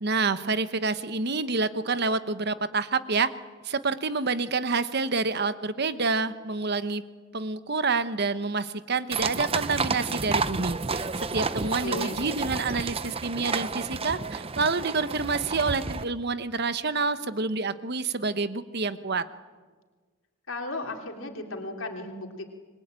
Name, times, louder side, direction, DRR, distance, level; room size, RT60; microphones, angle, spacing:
voice 1, 0.0-3.3 3.6-7.0 7.3-19.2, right 4 dB, 50° right, 12 dB, 1.1 m, -28 dB
sound 1, 9.1-16.0, right 4 dB, 30° right, 0.7 m, -31 dB
voice 2, 11.6-12.2 20.5-22.5, left 2 dB, 75° left, 2 dB, 3.3 m, -35 dB
27.0 x 22.5 x 9.0 m, 1.4 s
head